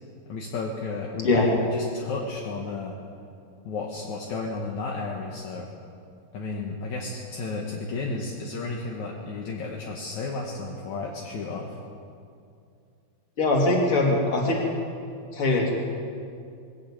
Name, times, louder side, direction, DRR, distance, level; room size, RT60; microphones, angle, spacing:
voice 1, 0.3-3.0 3.7-5.7 6.3-11.8, left 3 dB, 60° left, -1 dB, 2.1 m, -33 dB
voice 2, 13.4-14.6 15.3-15.7, left 2 dB, 35° left, -1 dB, 3.3 m, -22 dB
21.0 x 14.5 x 8.8 m, 2.5 s
omnidirectional pair, 5.2 m